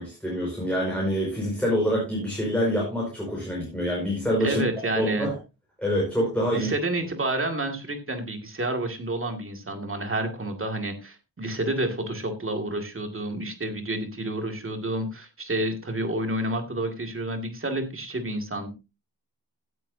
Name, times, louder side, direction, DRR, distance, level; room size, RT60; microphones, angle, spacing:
voice 1, 0.0-4.6 5.0-5.4 5.8-6.7, equal, 5° left, -4 dB, 5.1 m, -26 dB
voice 2, 4.4-5.3 6.5-18.7, right 1 dB, 30° right, 5 dB, 2.2 m, -29 dB
17.0 x 9.2 x 2.7 m, 0.27 s
wide cardioid pair, 170°, 42 cm